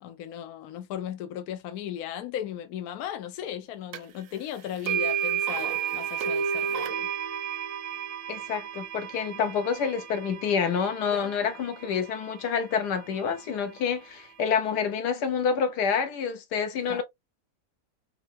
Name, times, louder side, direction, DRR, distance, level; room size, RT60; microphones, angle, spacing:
voice 1, 0.0-7.1 11.1-11.3 16.9-17.0, left 10 dB, 70° left, 1.1 m, -36 dB
sound 1, 3.9-4.0 4.9-12.9, right 8 dB, 65° right, 0.9 m, -32 dB
voice 2, 8.3-17.0, left 6 dB, 90° left, 1.4 m, -28 dB
4.4 x 2.7 x 2.5 m
omnidirectional pair, 1.7 m